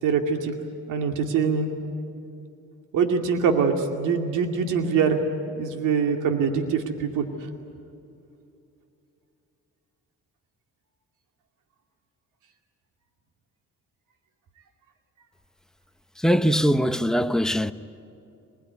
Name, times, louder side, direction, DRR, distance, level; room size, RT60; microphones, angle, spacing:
voice 1, 0.0-0.5 0.9-1.7 2.9-5.2 5.6-7.5, right 6 dB, 85° right, 2.4 m, -24 dB
voice 2, 16.2-17.7, equal, ahead, 0.9 m, -21 dB
24.0 x 21.0 x 9.5 m
cardioid pair, 90°, 30 cm